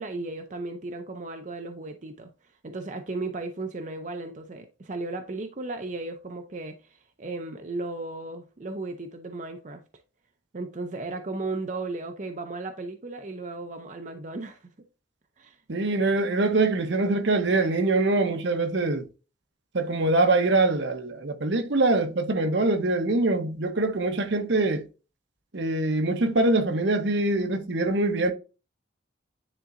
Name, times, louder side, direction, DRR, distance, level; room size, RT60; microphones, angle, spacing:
voice 1, 0.0-2.3 2.6-9.8 10.5-14.6 15.4-15.6, right 2 dB, 40° right, 0.6 m, -35 dB
voice 2, 15.7-19.1 19.7-24.8 25.5-28.3, right 2 dB, 70° right, 0.9 m, -24 dB
9.9 x 3.8 x 2.5 m
head